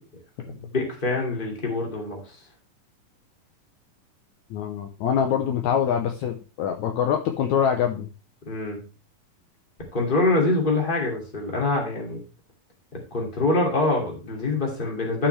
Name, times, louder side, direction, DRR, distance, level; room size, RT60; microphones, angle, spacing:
voice 1, 0.5-2.3 8.5-8.8 9.9-12.2 13.1-15.3, left 2 dB, 15° left, 0 dB, 2.3 m, -25 dB
voice 2, 4.5-8.1, left 8 dB, 70° left, 4 dB, 1.9 m, -24 dB
13.0 x 5.7 x 3.3 m, 0.33 s
omnidirectional pair, 4.0 m